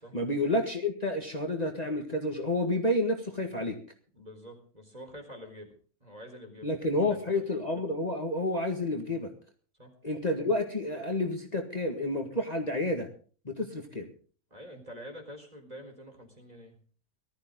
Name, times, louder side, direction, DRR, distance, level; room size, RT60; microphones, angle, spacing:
voice 1, 0.1-3.8 6.6-9.3 10.0-13.1 13.5-14.1, left 1 dB, 30° left, 3 dB, 1.9 m, -30 dB
voice 2, 4.1-5.7 6.0-7.6 9.8-9.9 14.5-16.8, equal, 30° right, 3 dB, 4.3 m, -47 dB
19.5 x 13.5 x 3.9 m, 0.42 s
omnidirectional pair, 1.4 m